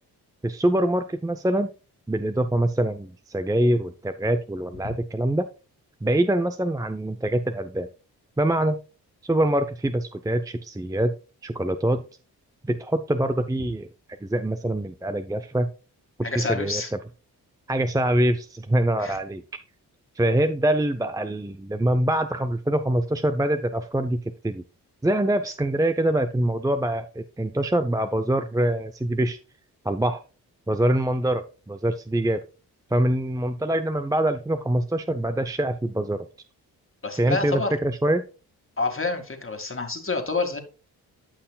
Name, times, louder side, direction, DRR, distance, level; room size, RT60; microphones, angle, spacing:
voice 1, 0.4-1.7 2.1-5.5 6.0-7.9 8.4-8.8 9.2-11.1 11.4-12.0 12.6-13.9 14.2-15.7 16.2-16.8 17.7-19.4 20.2-24.6 25.0-29.4 29.8-30.2 30.7-32.4 32.9-36.3 37.2-38.2, right 1 dB, 10° right, 0.7 m, -24 dB
voice 2, 16.2-16.9 19.0-19.2 37.0-37.7 38.8-40.6, left 3 dB, 30° left, 2.1 m, -28 dB
13.0 x 5.6 x 2.3 m
supercardioid pair, 40°, 41 cm